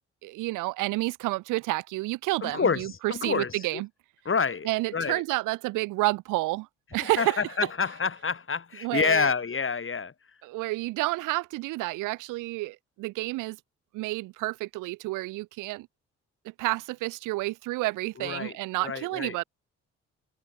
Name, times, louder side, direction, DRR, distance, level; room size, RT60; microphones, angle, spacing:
voice 1, 0.2-3.9 4.7-7.4 8.8-9.3 10.4-13.6 13.9-15.9 16.6-19.4, right 21 dB, 80° right, 3.6 m, -30 dB
voice 2, 2.4-3.8 4.3-5.2 7.0-10.1 18.2-19.4, left 5 dB, 40° left, 7.0 m, -28 dB
hypercardioid pair, 50°, 31 cm